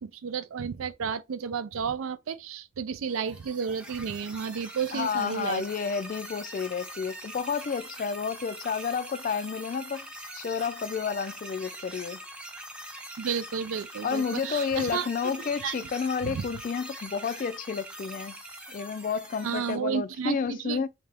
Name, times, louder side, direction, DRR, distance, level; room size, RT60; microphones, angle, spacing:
voice 1, 0.0-5.6 13.2-15.1 15.6-15.7 16.2-16.5 19.4-20.9, right 6 dB, 85° right, 0.4 m, -32 dB
sound 1, 3.1-19.8, right 1 dB, 5° right, 0.6 m, -43 dB
voice 2, 4.9-10.1 10.3-12.2 14.0-18.4 18.7-20.9, left 6 dB, 40° left, 0.3 m, -31 dB
3.3 x 2.8 x 3.4 m
head